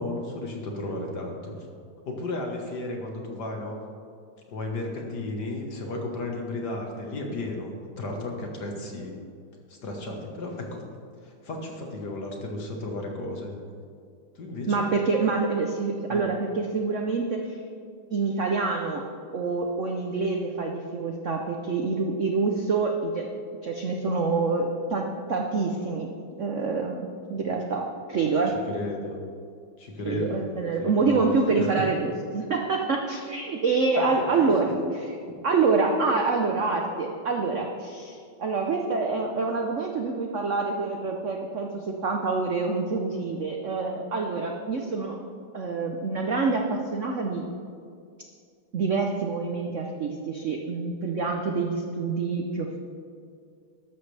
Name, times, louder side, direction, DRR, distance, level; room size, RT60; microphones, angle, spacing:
voice 1, 0.0-1.7 2.1-3.8 4.5-9.2 9.7-10.8 11.2-13.5 14.4-15.0 16.1-16.2 28.2-28.4 28.7-29.2 29.8-30.4 30.8-31.7 34.0-34.7 35.3-35.4, left 2 dB, 50° left, 1 dB, 1.9 m, -34 dB
voice 2, 14.7-17.6 18.1-19.0 19.3-23.3 23.6-26.1 26.4-27.0 27.3-28.5 30.0-34.7 35.4-45.2 45.5-47.4 48.7-52.8, right 4 dB, 70° right, 2 dB, 0.7 m, -26 dB
12.5 x 12.5 x 3.4 m, 2.3 s
omnidirectional pair, 2.4 m